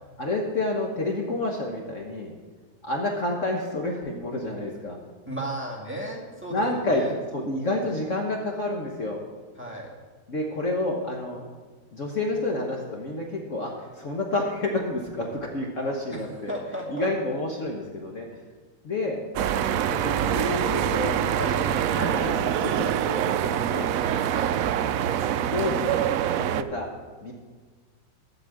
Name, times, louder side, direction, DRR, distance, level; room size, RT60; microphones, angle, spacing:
voice 1, 0.2-2.3 2.8-5.0 6.5-7.0 7.3-9.2 10.3-11.4 11.9-16.5 16.9-18.3 18.8-19.2 19.9-23.9 25.5-26.9 27.2-27.3, left 2 dB, 45° left, 0 dB, 1.4 m, -29 dB
voice 2, 5.3-7.1 9.6-9.9 16.1-17.1 24.3-24.6, right 1 dB, 5° right, -3 dB, 1.9 m, -35 dB
sound 1, 19.4-26.6, right 10 dB, 80° right, 0.7 m, -25 dB
10.5 x 8.1 x 7.5 m, 1.4 s
omnidirectional pair, 2.0 m